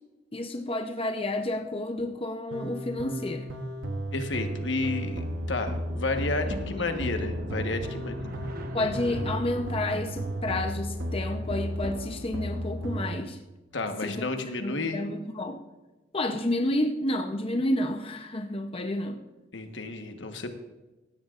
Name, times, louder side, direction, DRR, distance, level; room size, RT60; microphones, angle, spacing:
voice 1, 0.3-3.5 6.5-6.9 8.7-13.4 14.0-14.3 14.6-15.6 16.1-19.2, left 1 dB, 30° left, 5 dB, 0.7 m, -30 dB
sound 1, 2.5-13.2, equal, 80° right, 1.1 m, -34 dB
voice 2, 4.1-8.3 13.7-15.0 19.5-20.5, left 3 dB, 70° left, 6 dB, 1.3 m, -31 dB
sound 2, 4.3-13.1, right 1 dB, 50° right, 1.0 m, -42 dB
16.5 x 13.0 x 2.5 m, 1.1 s
head